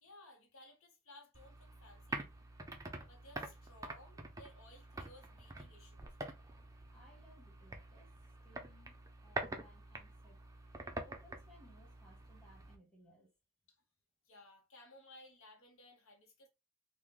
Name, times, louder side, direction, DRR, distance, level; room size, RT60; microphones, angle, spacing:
voice 1, 0.0-2.3 3.1-6.1 14.2-16.5, left 1 dB, 70° left, 0.9 m, -59 dB
sound 1, 1.3-12.8, right 2 dB, 15° right, 0.4 m, -47 dB
voice 2, 6.9-8.1 8.4-10.4 10.8-13.3, equal, 5° left, 1.0 m, -64 dB
3.1 x 2.1 x 3.7 m
head